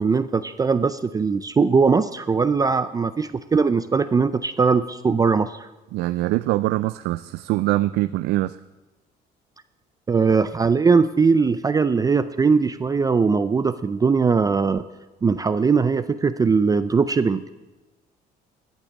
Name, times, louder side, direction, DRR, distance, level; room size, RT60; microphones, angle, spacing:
voice 1, 0.0-5.7 10.1-14.8 15.2-17.4, right 5 dB, 20° right, 12 dB, 0.4 m, -20 dB
voice 2, 5.9-8.6, right 17 dB, 85° right, 14 dB, 0.4 m, -23 dB
13.5 x 8.3 x 7.0 m, 1.2 s
cardioid pair, 110°, 17 cm